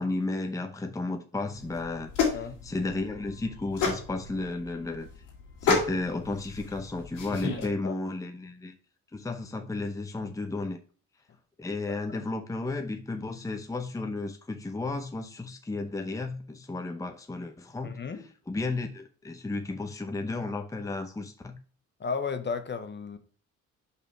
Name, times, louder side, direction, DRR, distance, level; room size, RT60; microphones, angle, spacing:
voice 1, 0.0-5.1 5.6-8.8 9.1-10.8 11.6-18.0 18.5-21.6, left 2 dB, 10° left, 0.8 m, -33 dB
sound 1, 1.6-7.7, left 5 dB, 85° left, 2.9 m, -31 dB
voice 2, 7.6-7.9 11.9-12.0 17.8-18.2 22.0-23.2, left 5 dB, 35° left, 1.1 m, -34 dB
5.5 x 5.0 x 4.8 m
cardioid pair, 90°, 30 cm